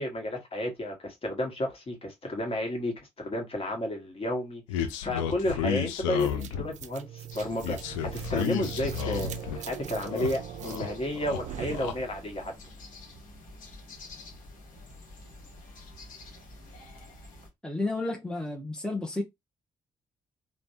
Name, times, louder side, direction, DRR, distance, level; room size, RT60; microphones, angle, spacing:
voice 1, 0.0-12.5, left 1 dB, 35° left, 1.3 m, -32 dB
sound 1, 4.7-6.8 7.6-9.6 9.9-10.9 11.2-11.9, left 8 dB, 75° left, 0.5 m, -32 dB
sound 2, 6.2-12.5, right 11 dB, 50° right, 0.4 m, -41 dB
sound 3, 7.3-17.5, left 2 dB, 55° left, 1.0 m, -48 dB
voice 2, 17.6-19.2, left 2 dB, 5° left, 0.7 m, -31 dB
3.2 x 2.2 x 2.7 m
figure-of-eight pair, 40°, 16 cm